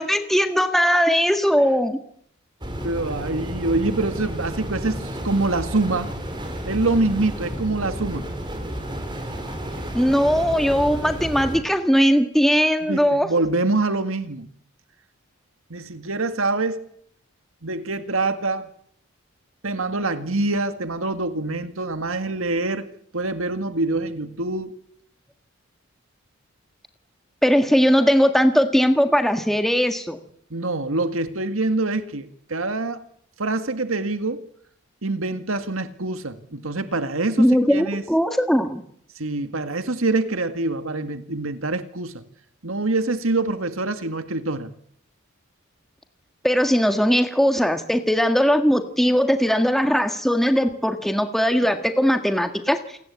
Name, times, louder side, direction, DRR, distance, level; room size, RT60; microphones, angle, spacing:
voice 1, 0.0-2.0 9.9-13.3 27.4-30.2 37.4-38.8 46.4-53.0, equal, ahead, 1.7 m, -19 dB
sound 1, 2.6-11.6, equal, 20° right, 5.3 m, -31 dB
voice 2, 2.8-6.1 6.7-8.3 12.9-14.5 15.7-16.9 17.6-18.7 19.6-22.9 23.1-24.8 30.5-33.0 33.4-34.5 35.0-38.0 39.2-42.2 42.6-44.7, right 2 dB, 70° right, 2.0 m, -25 dB
28.5 x 20.0 x 8.4 m
head